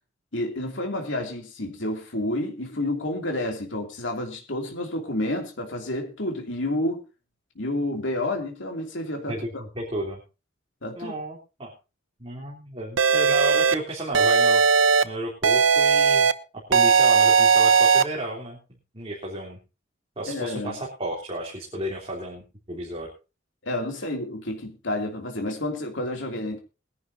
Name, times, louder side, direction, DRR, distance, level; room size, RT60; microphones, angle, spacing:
voice 1, 0.3-7.0 7.5-9.6 10.8-11.1 20.3-20.8 23.6-26.6, left 1 dB, 70° left, 2.9 m, -30 dB
voice 2, 9.3-10.2 11.0-11.7 12.2-16.3 16.7-18.6 18.9-19.6 20.2-23.1, right 1 dB, 30° right, 3.4 m, -33 dB
sound 1, 13.0-13.7 14.1-15.0 15.4-16.3 16.7-18.0, right 5 dB, 90° right, 0.9 m, -18 dB
21.5 x 11.0 x 2.8 m
head